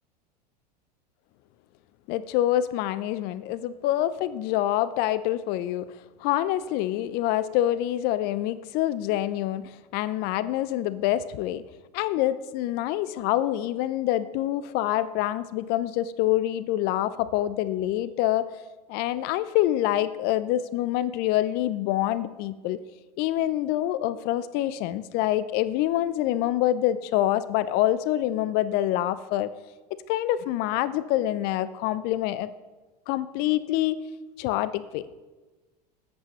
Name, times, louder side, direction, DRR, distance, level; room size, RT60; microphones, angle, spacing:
voice 1, 2.1-5.9 6.2-11.6 11.9-18.5 18.9-22.8 23.2-29.5 29.9-32.5 33.1-34.0 34.4-35.1, left 13 dB, 50° left, 15 dB, 0.5 m, -26 dB
19.5 x 8.3 x 3.0 m, 1.2 s
hypercardioid pair, 90°, 21 cm